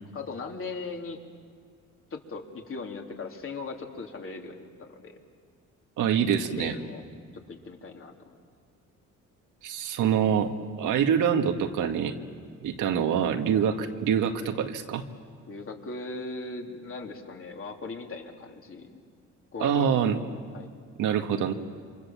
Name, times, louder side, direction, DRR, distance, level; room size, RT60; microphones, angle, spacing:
voice 1, 0.1-1.2 2.1-5.2 6.6-7.0 7.3-8.1 15.5-19.0 19.5-19.9 20.5-20.7, left 3 dB, 45° left, 2 dB, 3.4 m, -38 dB
voice 2, 6.0-6.7 9.6-12.1 12.6-15.0 19.6-20.2 21.0-21.5, right 8 dB, 85° right, 5 dB, 1.9 m, -25 dB
28.0 x 26.0 x 7.5 m, 2.1 s
cardioid pair, 90°, 30 cm